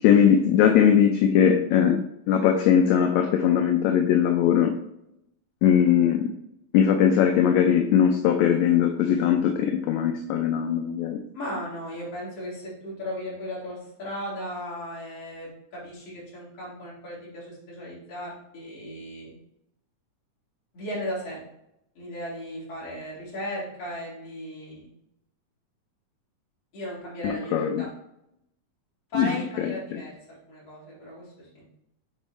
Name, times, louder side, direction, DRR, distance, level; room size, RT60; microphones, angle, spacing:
voice 1, 0.0-4.7 5.6-6.2 6.7-11.2 27.2-27.9 29.1-30.0, left 8 dB, 75° left, 4 dB, 1.7 m, -20 dB
voice 2, 11.3-19.3 20.7-21.4 22.0-24.8 26.7-27.9 29.1-31.6, equal, 50° left, -7 dB, 4.0 m, -36 dB
8.8 x 4.6 x 3.2 m, 0.80 s
omnidirectional pair, 3.6 m